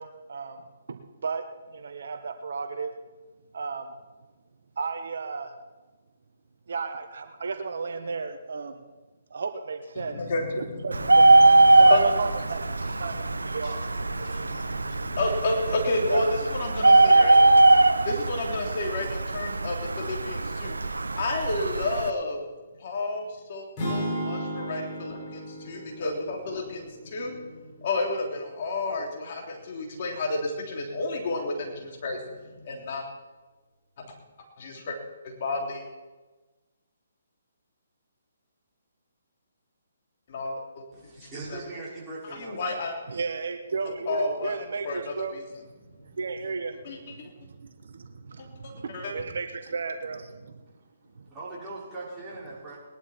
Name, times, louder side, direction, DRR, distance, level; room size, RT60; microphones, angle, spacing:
voice 1, 0.0-1.4 1.7-2.9 3.5-3.9 4.8-5.6 6.7-8.8 9.3-10.2 10.6-12.6 13.0-13.8 14.2-14.3 16.1-16.2 43.1-45.4 46.0-46.8 47.0-50.6 51.2-51.3, right 4 dB, 65° right, 7 dB, 1.3 m, -34 dB
voice 2, 10.0-12.2 12.8-17.4 17.8-22.4 22.8-33.0 34.0-34.1 34.6-35.0 35.2-35.9 40.3-40.8 41.2-41.6 42.3-43.0 44.1-44.6 44.8-45.4 46.8-47.3 48.6-49.1, left 2 dB, 50° left, 1 dB, 3.3 m, -32 dB
Bird, 10.9-22.1, right 2 dB, 85° right, 0.7 m, -21 dB
sound 1, 23.8-27.9, equal, 30° left, 5.8 m, -35 dB
voice 3, 40.9-42.6 51.3-52.8, right 3 dB, 15° right, -7 dB, 5.4 m, -40 dB
20.5 x 11.5 x 4.4 m, 1.2 s
figure-of-eight pair, 140°, 0 cm